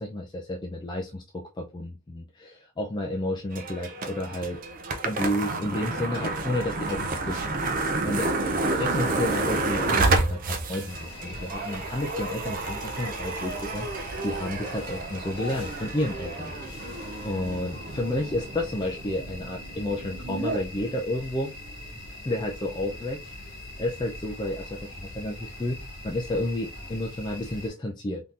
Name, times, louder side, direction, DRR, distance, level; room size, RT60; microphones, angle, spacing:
voice 1, 0.0-4.6 5.0-8.3 8.7-16.5 16.8-21.5 22.2-23.5 23.8-28.2, left 1 dB, 20° left, 0.4 m, -31 dB
sound 1, 3.5-20.6, right 2 dB, 40° right, 0.5 m, -30 dB
sound 2, 10.9-27.7, left 1 dB, 55° left, 1.4 m, -42 dB
3.6 x 2.8 x 2.4 m
head